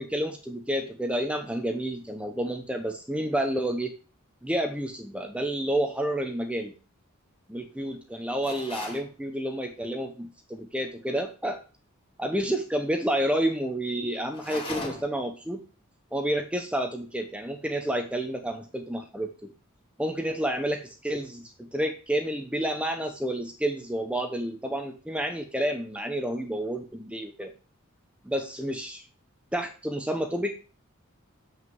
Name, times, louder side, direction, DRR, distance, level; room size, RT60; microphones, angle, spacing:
voice 1, 0.0-3.9 4.4-6.7 7.5-11.6 12.2-15.7 16.1-19.5 20.0-27.5 28.2-29.0 29.5-30.5, right 1 dB, 5° right, 5 dB, 0.9 m, -30 dB
sound 1, 8.4-9.1 14.3-15.2, left 2 dB, 25° left, 2.3 m, -37 dB
7.5 x 6.4 x 7.7 m, 0.37 s
head